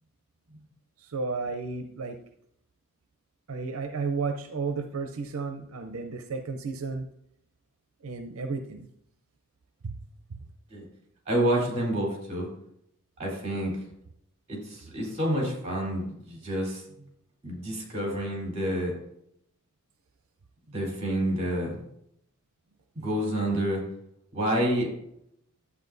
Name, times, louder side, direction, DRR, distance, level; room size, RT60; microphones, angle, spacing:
voice 1, 1.0-2.2 3.5-7.1 8.0-8.9 9.8-10.0, right 4 dB, 80° right, 7 dB, 0.6 m, -33 dB
voice 2, 11.3-12.5 13.2-13.7 14.5-16.8 17.4-18.9 20.7-21.8 22.9-23.8 24.3-24.9, equal, 30° right, -1 dB, 3.9 m, -28 dB
11.5 x 8.1 x 2.6 m, 0.73 s
head